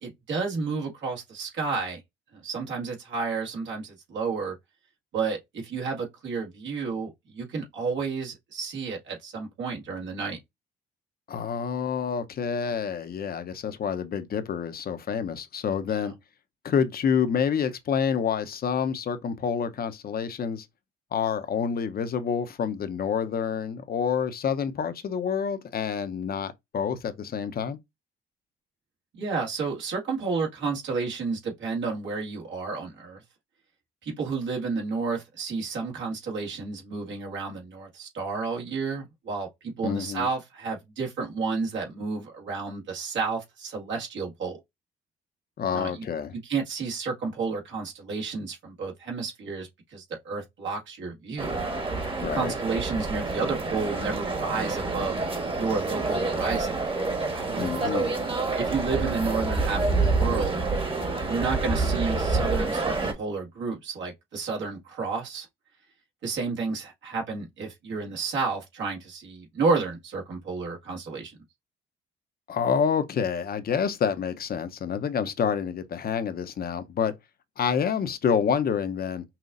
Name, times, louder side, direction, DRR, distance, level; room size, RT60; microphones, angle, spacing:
voice 1, 0.0-2.0 2.3-4.5 5.1-10.4 16.0-16.1 29.1-33.2 34.0-44.6 45.7-46.0 46.4-51.6 52.3-55.2 55.5-56.8 57.9-58.1 58.6-60.6 61.3-65.5 66.2-71.4, right 4 dB, 70° right, 1.9 m, -31 dB
voice 2, 11.3-16.1 16.6-20.7 21.1-27.8 39.8-40.3 45.6-46.3 52.2-52.5 57.6-58.1 72.5-77.1 77.6-79.2, left 7 dB, 50° left, 0.8 m, -28 dB
sound 1, 51.4-63.1, right 3 dB, 25° right, 1.4 m, -28 dB
5.7 x 2.4 x 2.5 m
supercardioid pair, 75°, 20 cm